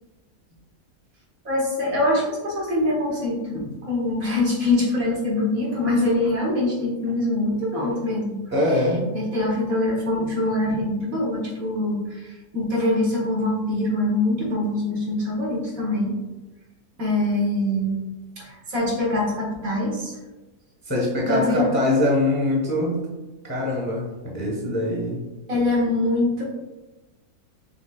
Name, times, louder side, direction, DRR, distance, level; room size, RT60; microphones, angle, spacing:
voice 1, 1.4-8.4 8.6-8.8 9.1-16.1 17.0-17.9 18.4-20.2 21.3-21.7 25.5-26.4, left 2 dB, 65° right, -4 dB, 1.7 m, -24 dB
voice 2, 8.5-9.1 20.8-23.0 23.4-25.2, left 1 dB, 15° left, -3 dB, 0.8 m, -23 dB
6.2 x 3.3 x 2.3 m, 1.1 s
omnidirectional pair, 1.6 m